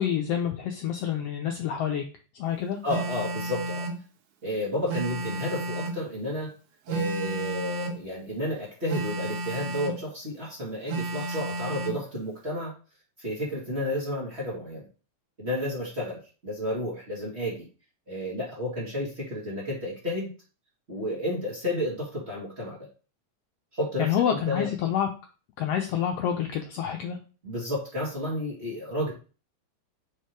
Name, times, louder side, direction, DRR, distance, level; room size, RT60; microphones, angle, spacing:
voice 1, 0.0-2.0 2.4-2.8 24.0-25.1 25.6-27.2, left 9 dB, 80° left, 3 dB, 1.4 m, -27 dB
voice 2, 2.8-3.9 4.4-6.5 6.9-12.7 13.2-14.8 15.4-17.7 18.1-20.3 20.9-22.8 23.7-24.7 27.4-29.1, left 1 dB, 25° right, -5 dB, 2.0 m, -31 dB
Telephone, 2.9-4.0 4.9-6.0 6.9-8.0 8.9-10.0 10.9-12.0, right 2 dB, 80° right, 2.4 m, -32 dB
5.2 x 4.6 x 4.6 m, 0.36 s
omnidirectional pair, 3.5 m